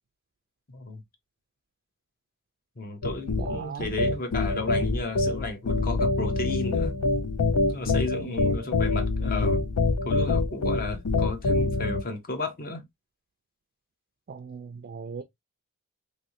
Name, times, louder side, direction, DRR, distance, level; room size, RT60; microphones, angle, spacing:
voice 1, 0.7-1.0 2.8-6.9 7.7-9.6 10.1-12.8, left 3 dB, 45° left, 0.9 m, -33 dB
sound 1, 3.0-12.0, left 3 dB, 85° left, 0.6 m, -25 dB
voice 2, 3.4-3.9 7.8-8.3 14.3-15.2, right 5 dB, 45° right, 0.4 m, -39 dB
3.3 x 2.7 x 2.8 m
head